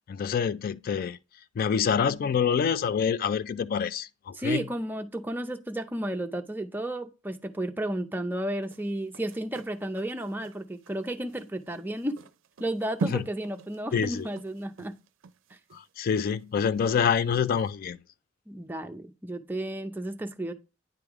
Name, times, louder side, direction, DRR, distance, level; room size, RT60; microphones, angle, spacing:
voice 1, 0.1-1.2 1.6-4.6 13.1-13.2 13.9-14.3 15.7-18.0, left 7 dB, 50° left, 0.3 m, -26 dB
voice 2, 4.3-12.2 12.6-14.9 18.5-20.5, right 1 dB, 10° right, 0.5 m, -33 dB
sound 1, 8.6-17.2 17.6-17.7, right 4 dB, 80° right, 0.4 m, -41 dB
9.4 x 3.4 x 3.5 m
head